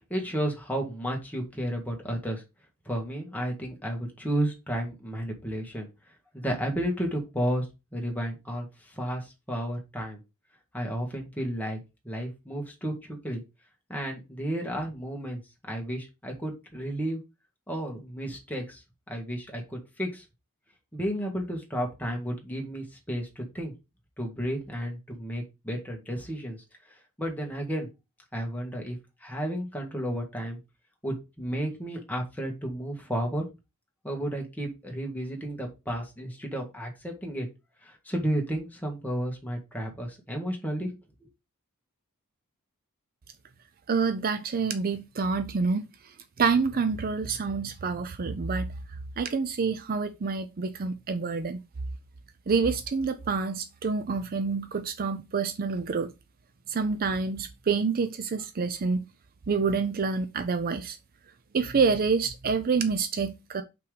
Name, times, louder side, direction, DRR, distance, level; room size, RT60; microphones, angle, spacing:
voice 1, 0.1-2.4 2.9-5.9 6.3-7.7 7.9-10.2 10.7-13.4 13.9-17.2 17.7-18.8 19.1-20.2 20.9-23.7 24.2-26.6 27.2-27.9 28.3-30.6 31.0-33.4 34.0-37.5 37.8-40.9, equal, 10° left, 1.7 m, -32 dB
voice 2, 43.9-45.9 46.4-48.7 49.2-51.6 52.5-56.1 56.7-59.1 59.5-61.0 61.5-63.6, right 5 dB, 40° right, 0.5 m, -27 dB
5.7 x 3.8 x 4.8 m
head